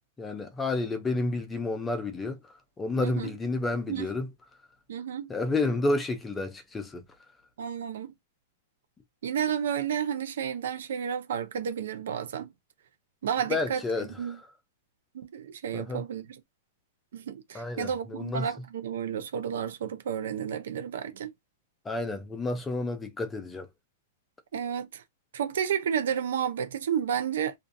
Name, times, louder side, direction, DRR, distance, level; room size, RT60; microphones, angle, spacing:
voice 1, 0.2-2.4 2.8-4.3 5.3-7.0 13.5-14.4 15.7-16.0 17.5-18.5 21.9-23.7, left 2 dB, 10° left, 0.6 m, -30 dB
voice 2, 3.0-3.3 3.9-4.1 4.9-5.3 7.6-8.1 9.2-12.5 13.2-14.4 15.1-16.4 17.1-21.3 24.5-25.0 25.3-27.5, right 8 dB, 75° right, 0.7 m, -31 dB
2.5 x 2.5 x 2.6 m
hypercardioid pair, 150°, 0 cm